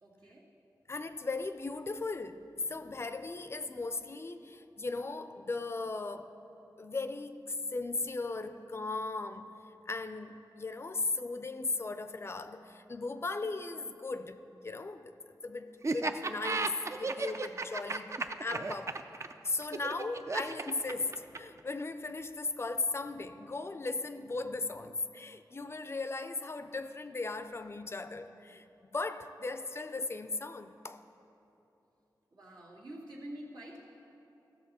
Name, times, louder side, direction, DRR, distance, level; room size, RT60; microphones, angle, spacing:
voice 1, 0.0-0.4 32.3-33.8, right 1 dB, 75° right, 2.1 m, -47 dB
voice 2, 0.9-6.4 6.8-9.6 9.9-15.2 15.4-19.0 19.4-31.0, left 3 dB, 35° left, 0.4 m, -37 dB
Laughter, 15.8-21.6, right 3 dB, 40° right, 0.4 m, -34 dB
14.5 x 6.7 x 4.1 m
wide cardioid pair, 90°, 7 cm